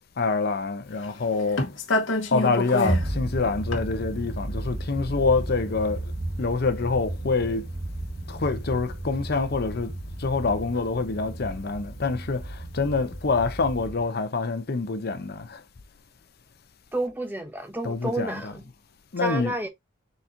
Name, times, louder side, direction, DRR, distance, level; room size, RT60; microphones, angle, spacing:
voice 1, 0.2-1.7 2.3-6.1 6.4-7.7 8.3-15.6 17.8-18.6 19.1-19.6, left 4 dB, 55° left, 0.7 m, -26 dB
sound 1, 0.9-9.0 9.3-13.0 13.4-13.8, left 2 dB, 90° left, 1.1 m, -31 dB
sound 2, 2.8-14.0, right 1 dB, 30° right, 1.3 m, -33 dB
voice 2, 16.9-18.6 19.2-19.7, right 1 dB, 10° right, 0.8 m, -30 dB
4.3 x 4.0 x 2.5 m
head